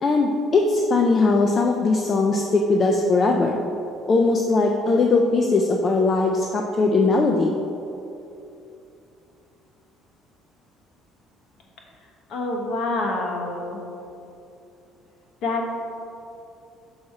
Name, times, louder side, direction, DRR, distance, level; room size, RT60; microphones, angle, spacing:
voice 1, 0.0-3.6 4.1-7.5, left 3 dB, 25° left, 2 dB, 0.3 m, -20 dB
voice 2, 12.3-13.8 15.4-15.8, left 2 dB, 60° left, 0 dB, 1.0 m, -26 dB
6.2 x 4.2 x 4.7 m, 2.7 s
cardioid pair, 170°, 0 cm